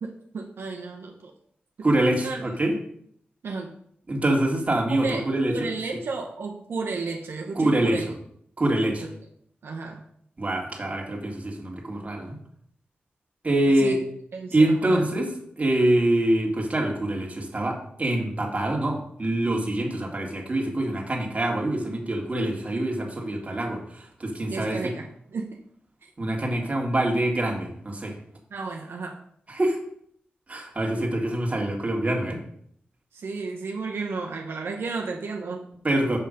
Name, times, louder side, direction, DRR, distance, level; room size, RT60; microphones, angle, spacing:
voice 1, 0.0-1.3 2.2-2.6 3.4-3.7 5.0-8.1 9.0-9.1 9.6-10.0 13.7-14.0 14.3-15.0 24.5-25.6 26.0-26.1 28.5-29.2 33.1-35.7, right 4 dB, 80° right, 1 dB, 0.9 m, -33 dB
voice 2, 1.8-2.7 4.1-5.5 7.6-8.0 8.6-9.1 10.4-12.4 13.4-14.0 14.5-15.3 15.6-24.8 26.2-28.2 29.5-29.8 30.5-32.4 35.8-36.2, right 1 dB, 35° right, 0 dB, 2.1 m, -25 dB
7.1 x 5.6 x 5.1 m, 0.67 s
cardioid pair, 70°, 4 cm